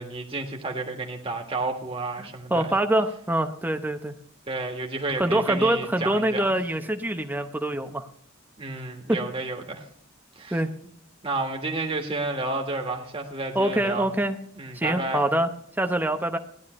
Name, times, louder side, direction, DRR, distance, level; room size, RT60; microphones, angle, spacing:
voice 1, 0.0-2.7 4.5-6.5 8.6-9.8 10.3-10.6 11.2-14.1 14.5-15.2, right 3 dB, 25° right, 2 dB, 1.6 m, -31 dB
voice 2, 2.2-4.1 5.2-8.0 9.1-9.2 10.5-10.7 13.5-14.4 14.7-15.5 15.8-16.4, right 1 dB, 10° right, 7 dB, 0.8 m, -25 dB
16.0 x 11.5 x 3.2 m, 0.66 s
head